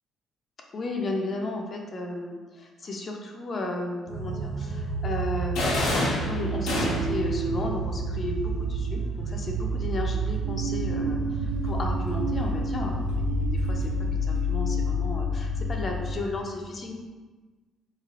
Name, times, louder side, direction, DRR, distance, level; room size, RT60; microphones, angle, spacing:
voice 1, 0.7-16.9, left 2 dB, 40° left, 1 dB, 0.5 m, -34 dB
sound 1, 4.1-16.1, right 1 dB, 85° right, 0.4 m, -28 dB
sound 2, 5.6-7.3, left 1 dB, 90° left, 0.9 m, -27 dB
3.7 x 3.2 x 2.4 m, 1.3 s
cardioid pair, 110°, 0 cm